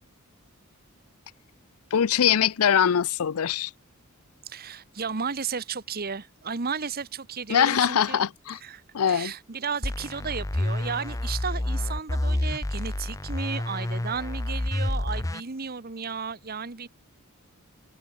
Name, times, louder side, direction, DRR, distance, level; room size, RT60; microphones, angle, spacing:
voice 1, 1.9-3.7 7.5-8.6 8.9-9.3, left 8 dB, 80° left, 0.5 m, -22 dB
voice 2, 4.5-8.3 8.6-16.9, right 5 dB, 45° right, 1.1 m, -34 dB
sound 1, 9.8-15.4, left 1 dB, 15° left, 0.6 m, -29 dB
head